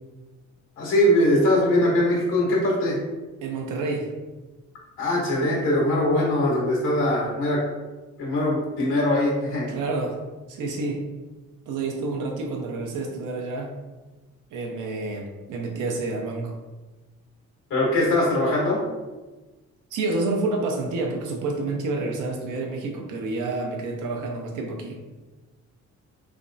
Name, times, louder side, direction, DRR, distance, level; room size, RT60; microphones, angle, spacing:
voice 1, 0.8-3.0 5.0-7.6 8.2-9.7 17.7-18.8, left 1 dB, 85° left, -4 dB, 1.5 m, -21 dB
voice 2, 3.4-4.1 9.7-10.2 10.5-11.0 11.7-13.7 14.5-16.6 19.9-25.0, right 3 dB, 85° right, 2 dB, 0.7 m, -29 dB
3.3 x 3.1 x 2.6 m, 1.2 s
cardioid pair, 90°, 30 cm